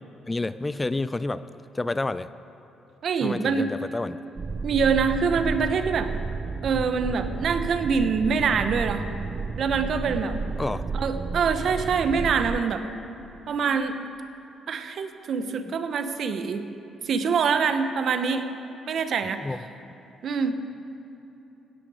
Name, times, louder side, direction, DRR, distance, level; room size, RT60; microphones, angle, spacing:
voice 1, 0.3-1.4 1.7-2.3 3.2-4.2 10.6-10.9 15.7-15.8 19.2-19.6, left 2 dB, 20° left, 14 dB, 0.3 m, -29 dB
voice 2, 3.0-3.7 4.6-6.1 6.6-9.0 9.6-10.4 10.9-12.8 13.5-14.0 14.7-16.7 17.0-18.5 18.8-19.4 20.2-20.5, right 5 dB, 60° right, 9 dB, 0.9 m, -25 dB
sound 1, 4.4-12.6, right 4 dB, 35° right, 0.5 m, -32 dB
17.0 x 9.9 x 4.9 m, 3.0 s
cardioid pair, 90°, 0 cm